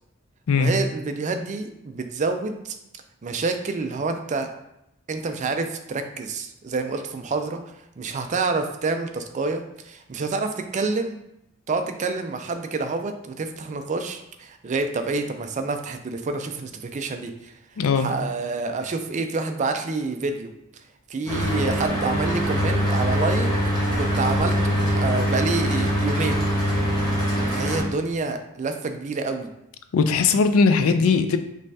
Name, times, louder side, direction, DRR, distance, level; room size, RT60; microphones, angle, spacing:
voice 1, 0.6-2.7 3.2-4.5 5.1-7.6 8.0-11.2 11.7-17.5 17.9-20.5 21.1-23.5 24.0-26.5 27.5-29.5, right 3 dB, 35° right, 7 dB, 0.4 m, -28 dB
voice 2, 17.8-18.1 29.9-31.4, left 4 dB, 65° left, 9 dB, 0.4 m, -19 dB
Mechanical fan, 21.3-27.8, equal, 20° left, 1.1 m, -23 dB
5.3 x 3.2 x 2.7 m, 0.81 s
head